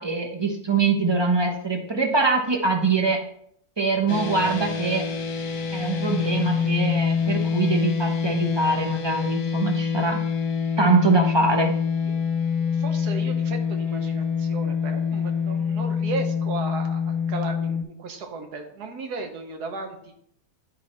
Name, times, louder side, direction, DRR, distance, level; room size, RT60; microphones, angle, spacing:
voice 1, 0.0-3.2 3.8-5.0 5.7-10.2 10.8-11.7, right 4 dB, 25° right, 3 dB, 0.6 m, -23 dB
sound 1, 4.1-17.8, left 6 dB, 75° left, 1.4 m, -26 dB
voice 2, 12.6-20.1, right 3 dB, 80° right, 5 dB, 1.5 m, -35 dB
10.5 x 3.9 x 4.2 m, 0.68 s
omnidirectional pair, 1.7 m